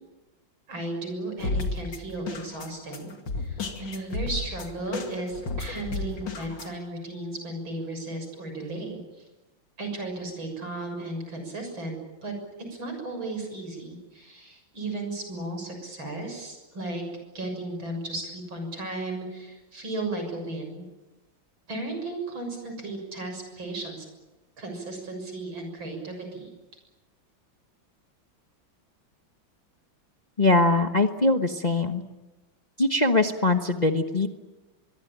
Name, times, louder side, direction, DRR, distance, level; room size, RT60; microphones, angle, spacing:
voice 1, 0.7-3.1 3.4-9.0 9.8-17.0 17.3-20.8 21.7-24.1 24.6-26.5, right 2 dB, 80° right, 5 dB, 7.5 m, -35 dB
sound 1, 1.4-6.7, left 3 dB, 65° left, 3.1 m, -33 dB
voice 2, 30.4-32.0 32.8-34.3, left 2 dB, 25° left, 5 dB, 1.1 m, -22 dB
24.5 x 23.0 x 8.9 m, 1.1 s
omnidirectional pair, 2.1 m